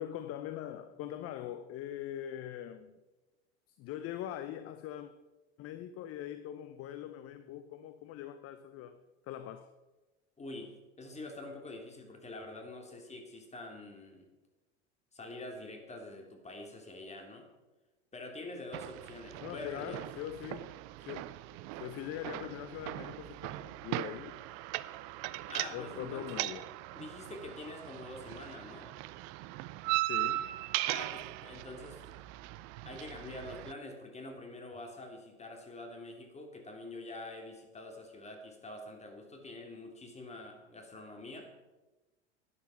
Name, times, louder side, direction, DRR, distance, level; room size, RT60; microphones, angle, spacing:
voice 1, 0.0-3.0 3.7-5.1 5.6-9.7 19.4-21.3 21.7-24.4 25.7-26.7 30.0-30.5, left 11 dB, 40° left, 0.8 m, -42 dB
voice 2, 10.4-14.3 15.1-17.5 18.1-20.0 25.5-26.5 26.9-28.9 30.8-32.0 32.8-41.5, left 2 dB, 20° left, 3.1 m, -46 dB
sound 1, 18.7-33.7, right 17 dB, 50° right, 0.6 m, -39 dB
12.0 x 9.9 x 5.8 m
hypercardioid pair, 85°, 35 cm